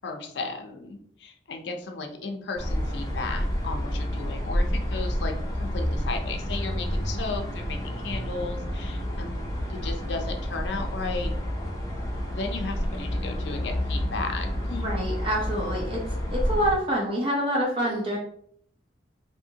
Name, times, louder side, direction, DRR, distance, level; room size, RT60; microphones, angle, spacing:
voice 1, 0.0-5.3 5.6-11.3 12.3-15.0, left 3 dB, 80° left, 4 dB, 0.5 m, -35 dB
sound 1, 2.6-16.8, equal, 20° left, 0.6 m, -29 dB
voice 2, 14.8-16.0 16.3-18.2, equal, 30° right, -3 dB, 0.7 m, -26 dB
2.8 x 2.6 x 2.7 m, 0.62 s
head